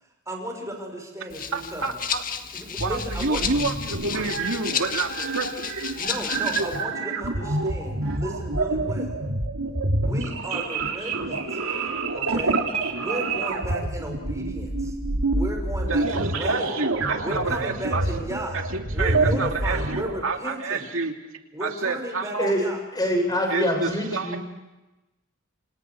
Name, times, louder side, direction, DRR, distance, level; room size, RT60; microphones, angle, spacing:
voice 1, 0.3-2.0 2.5-3.6 6.0-9.2 10.0-11.6 12.1-12.6 12.9-14.9 15.3-16.8 17.2-18.6 18.9-20.9 21.5-22.8, right 1 dB, 15° right, 2 dB, 6.1 m, -34 dB
Rattle (instrument), 1.3-6.8, left 7 dB, 40° left, 1.8 m, -32 dB
voice 2, 1.5-2.2 2.8-5.7 15.9-18.0 18.7-21.2 21.6-22.5 23.5-24.4, right 3 dB, 65° right, 3 dB, 2.6 m, -29 dB
sound 1, 2.8-20.2, right 2 dB, 90° right, 3.3 m, -27 dB
voice 3, 22.9-24.4, equal, 20° left, 2 dB, 7.1 m, -24 dB
29.5 x 28.0 x 4.9 m, 1.0 s
head